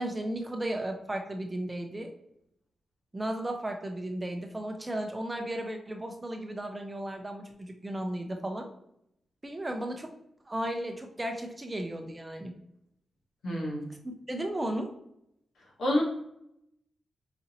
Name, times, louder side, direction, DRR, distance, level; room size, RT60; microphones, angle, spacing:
voice 1, 0.0-2.1 3.1-8.7 9.4-10.1 10.5-12.5 14.0-14.9, right 1 dB, 15° right, 4 dB, 0.5 m, -35 dB
voice 2, 13.4-13.9 15.8-16.0, left 1 dB, 80° left, -3 dB, 1.3 m, -28 dB
4.9 x 2.8 x 2.6 m, 0.78 s
wide cardioid pair, 125°, 0 cm